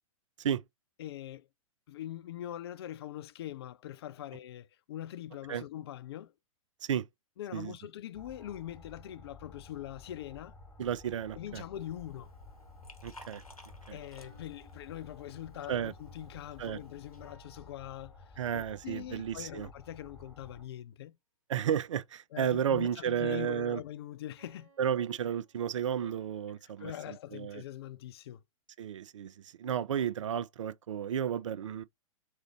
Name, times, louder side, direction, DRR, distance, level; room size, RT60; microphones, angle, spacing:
voice 1, 1.0-1.5 1.9-6.3 7.4-10.5 11.3-12.3 13.9-21.2 22.3-24.7 26.8-28.4, left 12 dB, 45° left, 0.4 m, -43 dB
sound 1, 8.1-20.7, left 3 dB, 10° left, 1.4 m, -54 dB
sound 2, 8.4-9.7 14.2-18.8 23.2-26.5, left 1 dB, 15° right, 2.3 m, -65 dB
voice 2, 10.8-11.6 13.0-13.4 13.9-14.0 15.7-15.9 16.6-16.8 18.4-19.7 21.5-23.8 24.8-27.6 28.8-31.8, right 9 dB, 60° right, 0.4 m, -33 dB
Liquid, 11.7-17.3, equal, 85° left, 1.0 m, -56 dB
3.6 x 3.3 x 3.0 m
figure-of-eight pair, 105°, 18 cm